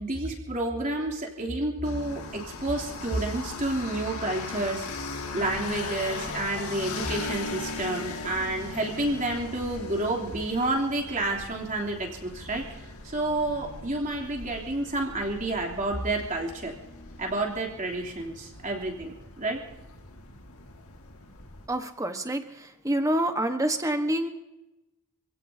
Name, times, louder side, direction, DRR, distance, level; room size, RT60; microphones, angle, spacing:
voice 1, 0.0-4.9 5.3-16.7 17.2-19.6, right 2 dB, 35° right, 0 dB, 3.2 m, -30 dB
sound 1, 1.8-21.7, left 3 dB, 80° left, 2.1 m, -39 dB
voice 2, 21.7-24.3, right 1 dB, 15° right, 6 dB, 1.3 m, -27 dB
27.5 x 16.5 x 2.8 m, 0.95 s
head